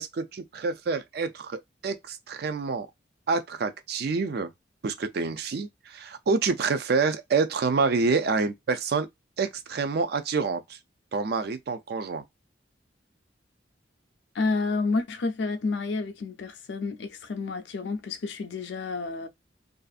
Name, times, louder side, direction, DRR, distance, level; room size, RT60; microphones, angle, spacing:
voice 1, 0.0-2.9 3.3-4.5 4.8-9.1 9.4-10.8 11.1-12.2, right 4 dB, 55° right, 0.4 m, -27 dB
voice 2, 14.3-19.3, left 3 dB, 70° left, 0.5 m, -30 dB
2.5 x 2.4 x 2.3 m
head